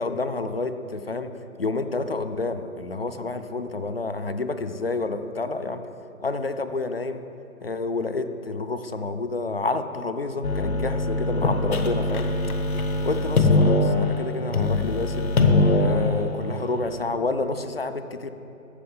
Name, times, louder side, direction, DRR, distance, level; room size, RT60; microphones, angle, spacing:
voice 1, 0.0-1.3 1.6-5.8 6.2-7.2 7.6-12.3 13.0-15.3 15.8-18.3, left 3 dB, 45° left, 9 dB, 0.5 m, -29 dB
sound 1, 10.4-16.8, left 2 dB, 85° left, 1.3 m, -22 dB
14.5 x 5.6 x 5.5 m, 2.8 s
hypercardioid pair, 175°, 42 cm